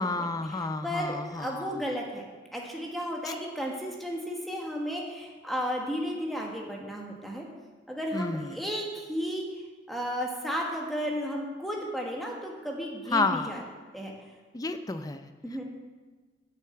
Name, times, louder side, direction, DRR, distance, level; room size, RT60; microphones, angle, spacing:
voice 1, 0.0-1.8 3.2-3.3 8.1-8.6 13.1-13.5 14.5-15.3, left 3 dB, 20° left, 9 dB, 0.5 m, -31 dB
voice 2, 0.8-2.3 2.5-7.5 7.9-9.4 9.9-13.6 13.9-14.1 15.4-15.6, equal, ahead, -2 dB, 1.4 m, -33 dB
8.1 x 6.7 x 7.8 m, 1.3 s
head